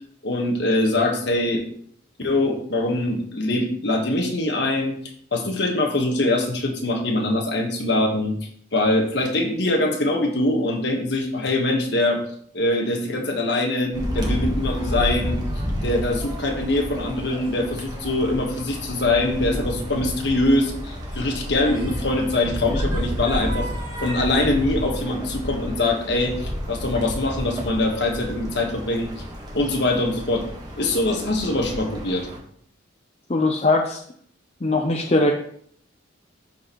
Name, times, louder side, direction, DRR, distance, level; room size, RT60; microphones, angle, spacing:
voice 1, 0.2-1.6 2.2-5.0 5.3-8.4 8.7-12.2 12.5-15.4 15.8-23.7 24.0-29.1 29.5-30.4 30.8-32.3, left 2 dB, 60° left, 2 dB, 1.4 m, -23 dB
sound 1, 13.9-32.4, equal, 20° right, 1.3 m, -30 dB
voice 2, 33.3-34.0 34.6-35.3, left 2 dB, 30° left, 2 dB, 0.6 m, -20 dB
12.0 x 4.4 x 3.0 m, 0.62 s
head